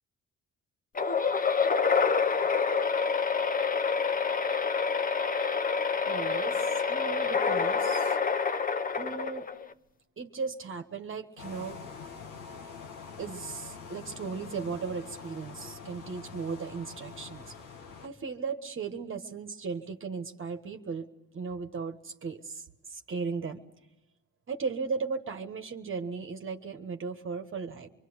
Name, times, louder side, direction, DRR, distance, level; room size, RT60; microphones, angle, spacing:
sound 1, 0.9-9.7, left 5 dB, 30° left, 0.9 m, -27 dB
voice 1, 6.1-8.2 9.0-9.5 10.2-11.8 13.2-17.6 18.0-23.6 24.5-27.9, right 5 dB, 40° right, 6 dB, 1.4 m, -36 dB
sound 2, 11.4-18.1, left 5 dB, 90° left, 1.9 m, -45 dB
24.5 x 23.5 x 8.1 m, 0.96 s
cardioid pair, 90°, 30 cm